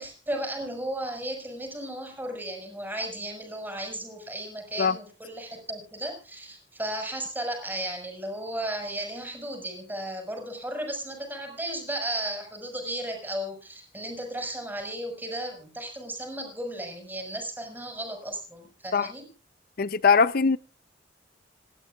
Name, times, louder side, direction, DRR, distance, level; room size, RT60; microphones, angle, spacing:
voice 1, 0.0-19.3, right 1 dB, 10° right, 5.8 m, -35 dB
voice 2, 19.8-20.6, left 5 dB, 55° left, 0.6 m, -21 dB
28.5 x 12.5 x 2.4 m
head